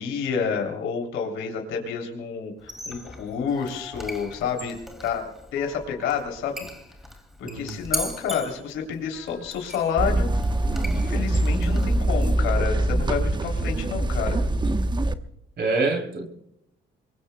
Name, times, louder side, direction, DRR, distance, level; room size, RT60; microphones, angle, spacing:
voice 1, 0.0-4.7 5.0-6.6 7.4-10.3 10.9-14.4, left 6 dB, 90° left, 3.1 m, -29 dB
Squeak, 2.6-12.2, equal, ahead, 2.3 m, -39 dB
voice 2, 7.4-7.8 15.6-16.3, right 3 dB, 60° right, 3.1 m, -26 dB
sound 1, 10.0-15.1, right 1 dB, 20° right, 1.0 m, -23 dB
25.0 x 22.0 x 2.2 m
cardioid pair, 90°, 20 cm